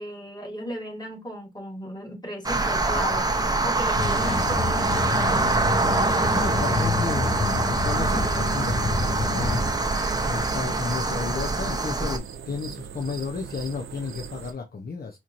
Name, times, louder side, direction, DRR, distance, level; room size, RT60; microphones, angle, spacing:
voice 1, 0.0-5.5 6.1-6.4, equal, 20° left, 1.7 m, -35 dB
sound 1, 2.4-12.2, right 2 dB, 20° right, 0.7 m, -24 dB
sound 2, 4.0-9.7, left 3 dB, 75° left, 2.0 m, -29 dB
sound 3, 4.0-14.5, right 7 dB, 80° right, 0.6 m, -39 dB
voice 2, 6.3-15.2, left 4 dB, 50° left, 0.7 m, -33 dB
4.3 x 2.9 x 2.5 m
cardioid pair, 65°, 21 cm